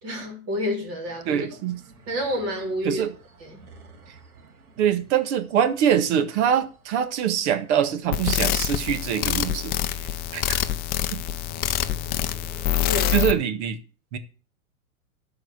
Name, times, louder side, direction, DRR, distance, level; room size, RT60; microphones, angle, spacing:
voice 1, 0.0-1.5 2.1-3.0 3.4-3.6 12.9-13.2, left 1 dB, 35° right, 4.3 m, -29 dB
sound 1, 1.0-13.4, left 2 dB, 90° right, 2.8 m, -46 dB
voice 2, 1.2-1.8 2.8-3.1 4.8-10.1 10.3-10.4 11.1-11.2 13.1-13.8 14.1-14.2, right 9 dB, 50° right, 1.7 m, -24 dB
sound 2, 8.1-13.3, left 13 dB, 20° left, 0.5 m, -25 dB
12.5 x 4.8 x 8.1 m
hypercardioid pair, 130°, 43 cm